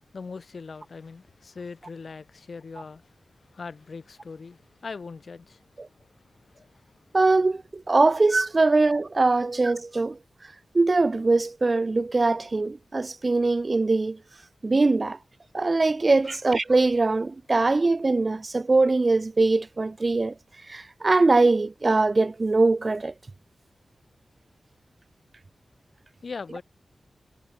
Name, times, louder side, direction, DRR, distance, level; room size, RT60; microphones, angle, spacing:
voice 1, 0.1-5.6 5.9-7.0 26.2-26.6, left 4 dB, 65° left, 0.9 m, -41 dB
voice 2, 7.1-10.2 10.7-14.2 14.6-15.2 15.5-20.3 20.7-23.1, right 3 dB, 45° right, 0.5 m, -22 dB
cardioid pair, 45°, 0 cm